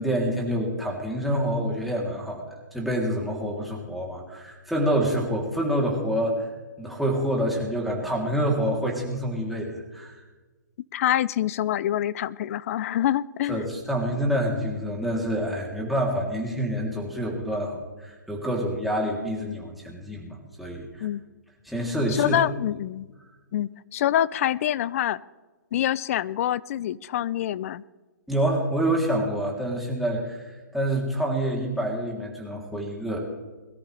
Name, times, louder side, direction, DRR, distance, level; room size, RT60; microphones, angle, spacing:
voice 1, 0.0-2.4 2.7-6.5 6.8-10.1 13.5-21.1 21.6-22.4 28.3-30.4 30.7-33.2, right 1 dB, ahead, -3 dB, 3.3 m, -27 dB
voice 2, 10.9-13.6 21.0-21.2 22.1-23.1 23.5-25.2 25.7-27.8, left 12 dB, 50° left, 20 dB, 0.5 m, -26 dB
22.0 x 13.5 x 3.4 m, 1.3 s
hypercardioid pair, 135°, 10 cm